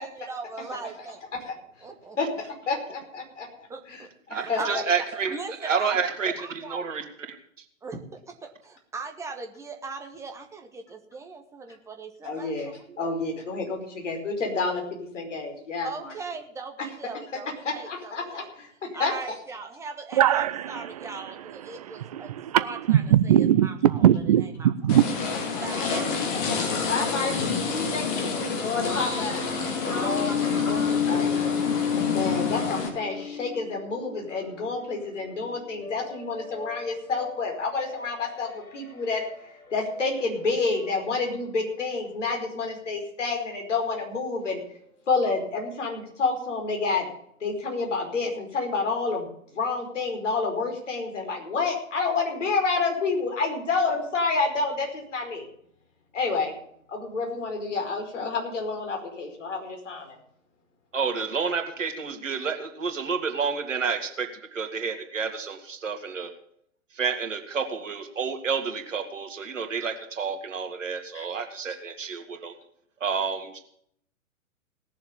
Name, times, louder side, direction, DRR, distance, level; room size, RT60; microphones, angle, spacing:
voice 1, 0.0-1.2 1.8-2.2 3.7-5.9 6.6-6.8 7.8-8.0 8.3-8.4 8.6-13.1 15.8-18.5 18.9-22.3 22.6-23.3 23.6-24.0 24.6-24.7 25.6-26.1 29.8-30.3, right 4 dB, 5° right, 1.2 m, -39 dB
voice 2, 2.2-4.8 12.2-14.8 15.1-16.2 17.3-18.7 19.0-19.4 25.5-25.9 26.3-26.5 26.9-29.4 31.0-31.5 32.1-39.2 39.7-44.6 45.1-47.1 47.4-55.5 56.1-56.5 56.9-60.2 71.1-71.2, left 4 dB, 60° left, 5.1 m, -29 dB
voice 3, 4.3-7.6 26.7-26.8 60.9-66.3 66.9-72.5 73.0-73.6, right 5 dB, 65° right, 2.4 m, -30 dB
voice 4, 20.1-25.0, right 11 dB, 30° right, 0.5 m, -22 dB
sound 1, 24.9-32.9, left 5 dB, 35° left, 2.7 m, -29 dB
sound 2, 28.8-34.8 35.2-39.4 39.7-42.3, left 6 dB, 90° left, 1.3 m, -32 dB
18.0 x 7.0 x 7.1 m
figure-of-eight pair, 115°, 42 cm